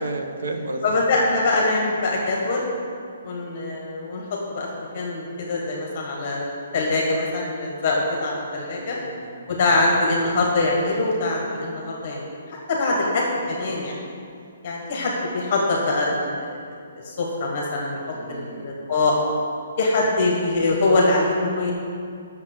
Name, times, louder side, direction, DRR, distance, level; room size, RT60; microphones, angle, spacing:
voice 1, 0.0-0.9 8.7-9.3 9.7-9.8 18.1-18.7, right 2 dB, 55° right, 4 dB, 1.2 m, -33 dB
voice 2, 0.8-2.6 3.2-4.2 4.5-4.7 4.9-9.0 9.5-14.0 14.6-16.4 17.0-18.0 18.3-19.1 19.8-21.7, left 2 dB, 25° left, -2 dB, 1.5 m, -23 dB
8.8 x 6.6 x 7.9 m, 2.3 s
hypercardioid pair, 180°, 0 cm